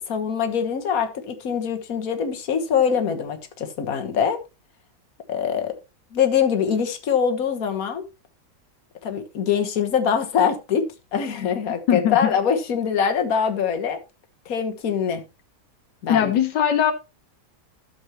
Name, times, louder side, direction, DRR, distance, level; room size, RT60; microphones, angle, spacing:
voice 1, 0.1-4.4 5.3-5.7 6.1-8.0 9.0-10.8 11.1-14.0 14.5-15.2 16.0-16.3, left 7 dB, 55° left, 1.7 m, -23 dB
voice 2, 11.9-12.3 16.1-16.9, left 9 dB, 80° left, 1.5 m, -20 dB
12.0 x 7.2 x 3.0 m
omnidirectional pair, 1.8 m